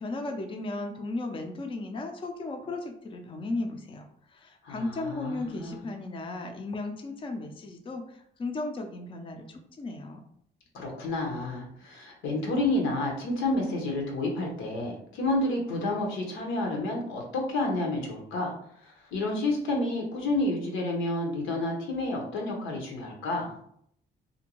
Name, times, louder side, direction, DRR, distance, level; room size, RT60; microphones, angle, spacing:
voice 1, 0.0-10.2, left 2 dB, 25° left, 4 dB, 0.4 m, -35 dB
voice 2, 4.6-5.9 10.7-18.5 18.8-23.6, left 2 dB, 90° left, 1 dB, 0.8 m, -30 dB
2.6 x 2.1 x 2.9 m, 0.67 s
cardioid pair, 90°, 20 cm